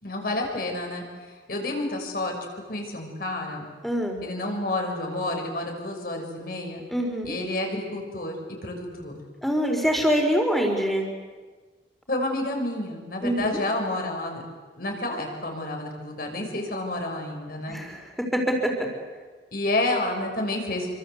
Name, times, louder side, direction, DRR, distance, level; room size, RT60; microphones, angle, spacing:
voice 1, 0.0-2.4 2.7-3.7 4.2-6.8 7.2-9.2 12.1-14.4 14.8-17.8 19.5-20.9, left 2 dB, 50° left, 2 dB, 6.2 m, -30 dB
voice 2, 3.8-4.2 6.9-7.3 9.4-11.1 13.2-13.5 17.7-18.7, equal, ahead, 2 dB, 4.5 m, -24 dB
27.5 x 25.0 x 8.2 m, 1.4 s
head